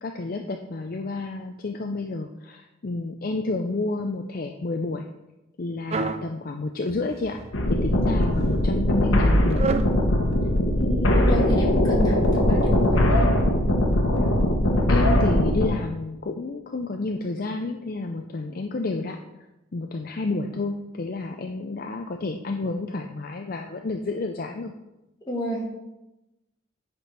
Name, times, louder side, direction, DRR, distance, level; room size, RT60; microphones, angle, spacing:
voice 1, 0.0-5.0 5.6-7.4 7.7-9.6 14.9-19.2 19.7-24.7, left 3 dB, 45° left, 4 dB, 0.5 m, -30 dB
sound 1, 5.9-6.3 6.9-7.6 8.2-8.6 9.5-10.0, right 4 dB, 35° right, 0.4 m, -29 dB
sound 2, 7.5-15.7, left 1 dB, 80° left, 1.2 m, -20 dB
voice 2, 10.7-13.1 25.3-25.6, equal, 20° left, -4 dB, 2.2 m, -30 dB
9.2 x 4.4 x 5.4 m, 0.95 s
head